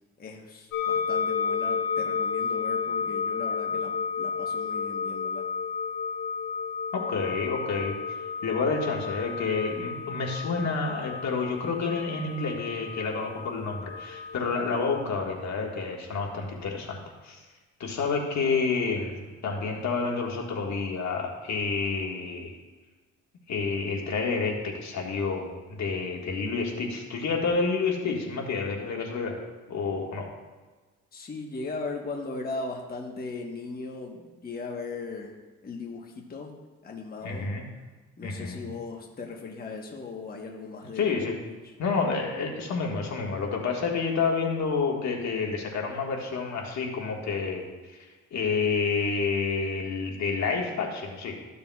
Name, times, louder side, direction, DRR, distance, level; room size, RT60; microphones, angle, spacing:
voice 1, 0.2-3.9 4.2-5.5 31.1-35.3 35.6-36.5 36.8-37.5 38.2-41.2 41.5-41.7, left 3 dB, 30° left, 1 dB, 1.2 m, -38 dB
sound 1, 0.7-15.0, left 5 dB, 80° left, 2.4 m, -32 dB
voice 2, 6.9-8.2 8.4-17.4 17.8-22.6 23.5-25.5 25.8-29.4 29.7-30.3 37.2-37.6 38.2-38.7 41.0-41.4 41.8-51.4, left 4 dB, 65° left, 0 dB, 1.7 m, -29 dB
14.0 x 6.8 x 2.4 m, 1.3 s
cardioid pair, 90°, 30 cm